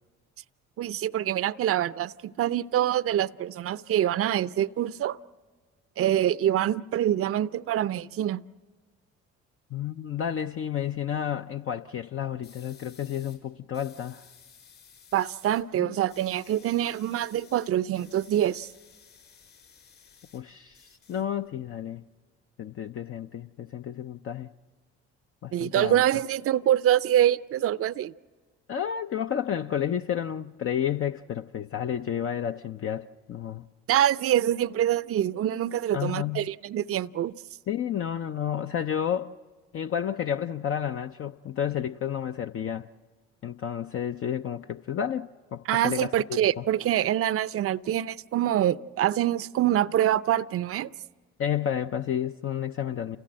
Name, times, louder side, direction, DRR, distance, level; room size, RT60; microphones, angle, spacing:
voice 1, 0.8-5.2 6.0-8.4 15.1-18.7 25.5-28.1 33.9-37.3 45.7-50.9, right 11 dB, 45° right, 0.6 m, -25 dB
voice 2, 9.7-14.2 15.8-16.0 20.3-22.0 22.6-24.5 25.4-26.0 28.7-33.6 35.9-36.5 37.7-39.3 39.7-42.9 43.4-46.6 51.4-53.2, left 9 dB, 45° left, 0.6 m, -31 dB
sound 1, 12.4-13.4 13.7-15.6 15.9-20.4 20.7-21.7, left 6 dB, 70° left, 6.7 m, -55 dB
28.5 x 15.5 x 7.6 m
hypercardioid pair, 60°, 31 cm